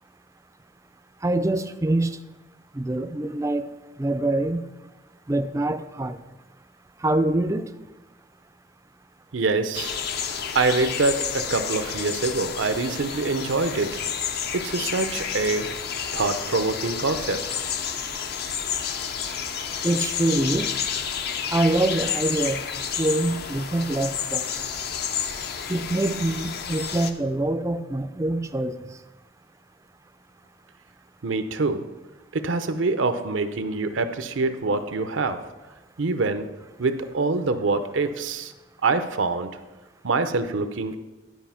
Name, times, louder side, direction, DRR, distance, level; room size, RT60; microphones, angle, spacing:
voice 1, 1.2-2.2 2.7-3.7 4.0-4.6 5.3-6.2 7.0-7.7 19.8-20.8 21.5-22.6 23.0-24.6 25.7-28.8, right 2 dB, 15° right, 10 dB, 0.4 m, -25 dB
voice 2, 9.3-10.0 10.5-14.0 14.5-15.7 16.1-17.6 31.2-31.9 32.3-35.4 36.0-36.5 36.8-38.5 38.8-39.6 40.0-41.0, right 3 dB, 80° right, 10 dB, 0.7 m, -25 dB
sound 1, 9.7-27.1, left 7 dB, 55° left, 0.6 m, -30 dB
11.5 x 4.9 x 5.7 m, 1.1 s
head